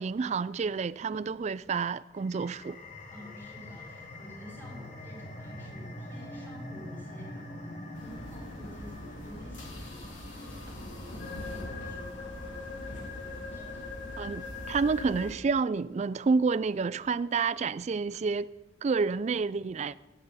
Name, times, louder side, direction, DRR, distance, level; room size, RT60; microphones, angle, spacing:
voice 1, 0.0-2.8 14.2-18.5 18.8-20.0, right 4 dB, 35° right, 0.3 m, -29 dB
sound 1, 2.1-13.3, left 1 dB, 40° left, 1.7 m, -45 dB
voice 2, 3.1-14.1, equal, 10° left, 4.9 m, -51 dB
sound 2, 7.9-15.4, left 2 dB, 80° left, 2.8 m, -41 dB
17.5 x 11.5 x 4.1 m
head